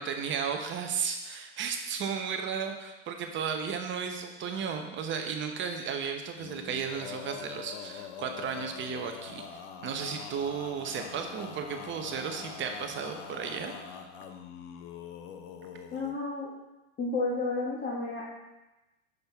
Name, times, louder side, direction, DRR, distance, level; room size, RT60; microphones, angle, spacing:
voice 1, 0.0-14.1, right 6 dB, 30° right, 5 dB, 0.8 m, -34 dB
Male singing, 6.4-16.2, left 7 dB, 65° left, 0.8 m, -44 dB
voice 2, 15.9-16.5 17.0-18.2, left 3 dB, 25° left, -5 dB, 1.3 m, -31 dB
6.0 x 5.3 x 3.4 m, 1.0 s
hypercardioid pair, 105°, 38 cm